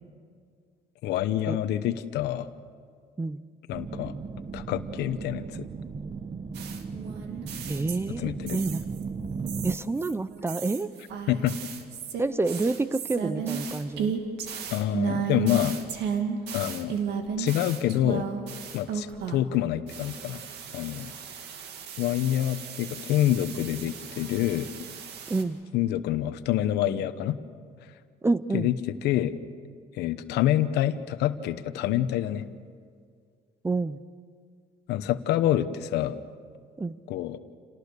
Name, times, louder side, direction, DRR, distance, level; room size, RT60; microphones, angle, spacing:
voice 1, 1.0-2.5 3.7-4.1 4.5-5.7 8.2-8.6 11.3-11.6 14.7-15.8 16.5-17.0 17.4-18.3 18.7-20.4 20.7-21.1 22.0-24.7 25.7-27.4 28.5-29.3 29.9-32.5 34.9-36.2 37.1-37.4, left 12 dB, 85° left, 12 dB, 1.1 m, -27 dB
sound 1, 3.7-9.8, right 5 dB, 30° right, 1.1 m, -36 dB
sound 2, 6.5-9.0 9.5-19.6 19.9-25.4, right 6 dB, 80° right, 2.2 m, -34 dB
voice 2, 7.7-8.8 9.6-10.9 12.2-14.2 25.3-25.6 28.2-28.7 33.6-34.0 36.8-37.0, right 3 dB, 15° right, 16 dB, 0.6 m, -28 dB
28.5 x 19.0 x 6.7 m, 2.1 s
cardioid pair, 110°, 17 cm